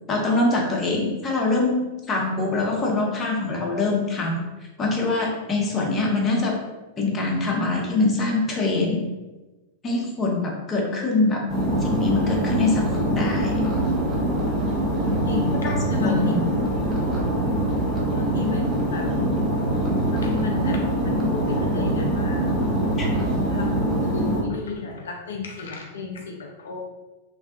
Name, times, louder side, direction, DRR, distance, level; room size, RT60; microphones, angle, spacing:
voice 1, 0.1-4.4 4.8-6.6 7.0-9.1 9.8-11.5 11.8-13.5 15.6-16.5 23.0-23.1, left 2 dB, 25° left, -1 dB, 0.6 m, -24 dB
sound 1, 11.5-24.4, right 1 dB, 15° right, 0.7 m, -23 dB
voice 2, 15.2-16.3 18.1-19.1 20.1-22.7 23.0-23.1 23.5-26.8, left 4 dB, 70° left, 0 dB, 0.3 m, -33 dB
2.6 x 2.2 x 2.4 m, 1.1 s
figure-of-eight pair, 95°, 0 cm